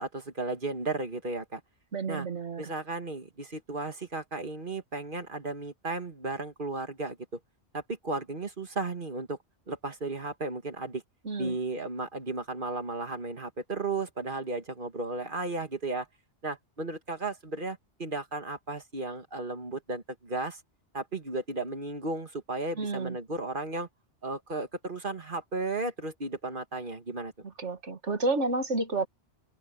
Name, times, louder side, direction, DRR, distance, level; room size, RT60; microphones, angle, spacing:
voice 1, 0.0-1.6 2.1-2.3 2.6-7.4 7.7-9.4 9.7-11.0 11.4-16.1 16.4-20.6 20.9-23.9 24.2-27.3, right 3 dB, 50° right, 2.2 m, -34 dB
voice 2, 1.9-2.7 11.2-11.6 22.8-23.2 27.6-29.1, right 3 dB, 85° right, 2.3 m, -30 dB
omnidirectional pair, 1.2 m